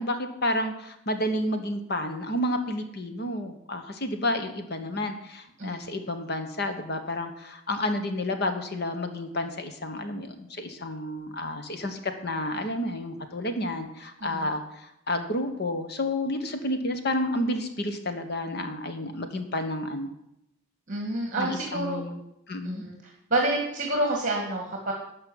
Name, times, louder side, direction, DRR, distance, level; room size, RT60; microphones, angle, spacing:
voice 1, 0.0-20.1 21.4-22.2 22.5-22.8, left 1 dB, 50° left, 7 dB, 1.3 m, -30 dB
voice 2, 20.9-22.0 22.6-23.0 23.3-24.9, right 2 dB, 40° right, 1 dB, 1.9 m, -28 dB
12.5 x 5.4 x 9.0 m, 0.82 s
head